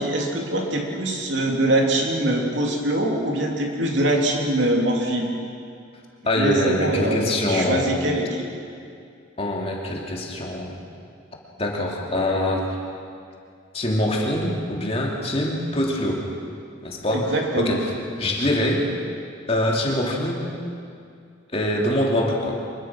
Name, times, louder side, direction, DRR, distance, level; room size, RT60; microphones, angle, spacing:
voice 1, 0.0-5.3 6.3-8.5 17.1-17.7, right 1 dB, 60° right, 0 dB, 3.3 m, -23 dB
voice 2, 6.2-8.1 9.4-10.8 11.6-12.8 13.7-16.3 16.8-17.9 18.2-18.9 19.5-20.5 21.5-22.6, left 1 dB, 30° left, -2 dB, 2.9 m, -24 dB
25.0 x 23.0 x 6.2 m, 2.4 s
head